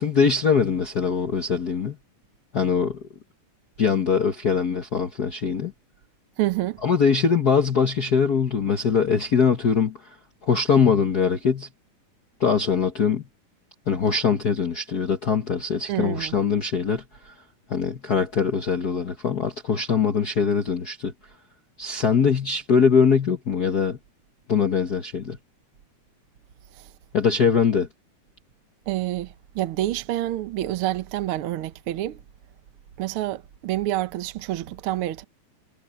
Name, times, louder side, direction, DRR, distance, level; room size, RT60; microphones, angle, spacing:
voice 1, 0.0-2.0 2.5-3.0 3.8-5.7 6.8-10.1 10.4-11.7 12.4-13.2 13.9-17.3 17.7-21.1 21.8-24.0 24.5-25.4 27.1-27.9, left 6 dB, 65° left, 0.9 m, -22 dB
voice 2, 6.4-6.8 15.9-16.3 26.8-26.9 28.9-32.2 33.0-35.2, right 14 dB, 65° right, 1.3 m, -28 dB
omnidirectional pair, 3.7 m